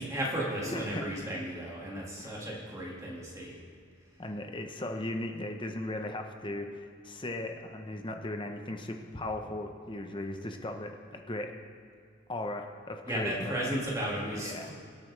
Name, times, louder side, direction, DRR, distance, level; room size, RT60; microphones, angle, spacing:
voice 1, 0.0-3.6 13.1-14.7, right 1 dB, 15° right, -4 dB, 2.1 m, -34 dB
voice 2, 0.6-1.1 2.2-2.3 4.2-11.5 12.3-13.8 14.3-14.7, left 1 dB, 25° left, 4 dB, 1.0 m, -37 dB
23.5 x 8.6 x 3.4 m, 2.3 s
head